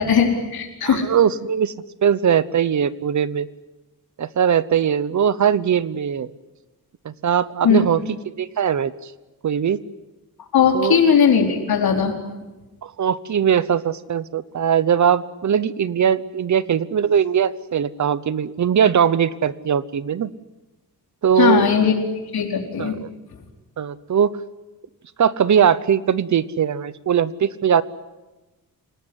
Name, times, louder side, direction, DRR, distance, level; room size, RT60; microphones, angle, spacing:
voice 1, 0.0-1.0 7.6-7.9 10.5-12.1 21.4-21.9 22.3-23.0, left 6 dB, 85° left, 2 dB, 4.6 m, -18 dB
voice 2, 0.8-1.7 2.0-3.5 4.2-6.3 7.0-9.1 9.4-9.8 10.7-11.0 12.8-20.3 21.2-21.6 22.8-23.1 23.8-24.3 25.2-27.8, right 8 dB, 50° right, 17 dB, 0.9 m, -20 dB
28.0 x 18.5 x 9.9 m, 1.1 s
wide cardioid pair, 175°, 36 cm